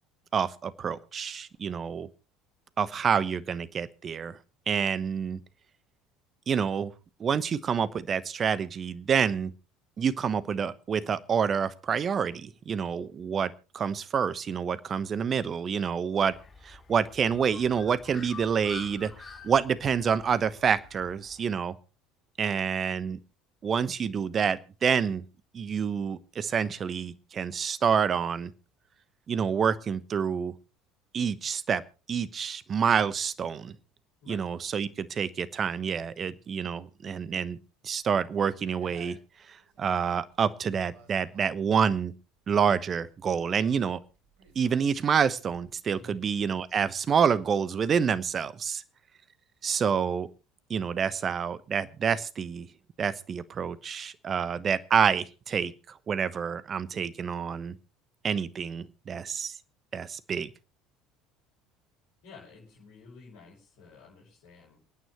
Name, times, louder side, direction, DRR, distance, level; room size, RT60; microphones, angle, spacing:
voice 1, 0.3-2.1 2.8-4.4 4.7-5.4 6.5-6.9 7.2-9.5 10.0-16.3 16.6-19.1 19.4-21.7 22.4-23.2 23.6-25.2 25.5-28.5 29.3-30.5 31.1-31.8 32.1-33.7 34.3-37.6 37.8-39.2 39.5-42.1 42.5-44.0 44.5-48.8 49.6-50.3 50.7-52.7 53.0-57.8 58.2-59.5 59.9-60.5, right 7 dB, 35° right, 15 dB, 1.0 m, -28 dB
Bird, 16.2-21.4, left 4 dB, 30° left, 3.4 m, -48 dB
sound 1, 38.3-40.4 40.7-46.7 47.0-48.1, right 4 dB, 70° right, 4.5 m, -58 dB
voice 2, 62.2-64.8, left 4 dB, 65° left, -6 dB, 6.9 m, -51 dB
27.5 x 9.3 x 3.0 m, 0.32 s
figure-of-eight pair, 65°, 0 cm